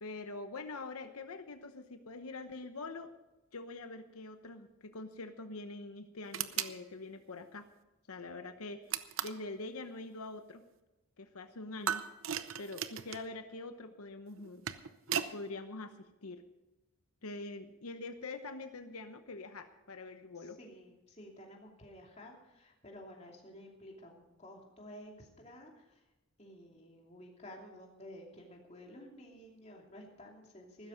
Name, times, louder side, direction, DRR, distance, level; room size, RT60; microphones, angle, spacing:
voice 1, 0.0-3.1 3.5-7.7 8.1-8.9 9.2-10.6 11.2-12.0 12.6-14.6 15.3-16.4 17.2-20.6, left 3 dB, 90° left, 8 dB, 0.9 m, -44 dB
sound 1, 6.3-6.8 8.9-9.4 11.9-13.3 14.4-15.3, right 8 dB, 70° right, 0.7 m, -36 dB
voice 2, 20.3-26.0 26.4-30.9, equal, 30° left, 0 dB, 2.8 m, -52 dB
15.0 x 13.0 x 5.2 m, 1.0 s
head